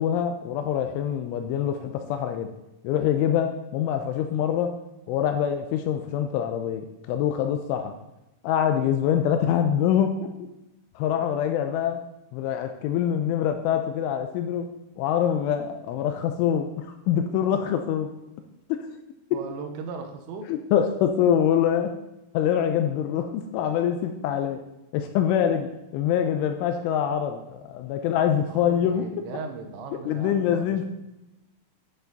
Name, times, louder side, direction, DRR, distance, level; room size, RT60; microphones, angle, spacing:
voice 1, 0.0-2.5 2.8-4.7 5.1-7.9 8.4-10.3 11.0-12.0 12.3-14.7 15.0-18.1 18.7-18.9 20.5-21.9 22.3-24.6 24.9-25.7 25.9-29.3 30.1-30.8, left 9 dB, 80° left, 6 dB, 2.9 m, -25 dB
voice 2, 19.3-20.5 28.5-30.8, right 4 dB, 80° right, 5 dB, 3.4 m, -38 dB
10.0 x 9.1 x 4.0 m, 0.95 s
omnidirectional pair, 6.0 m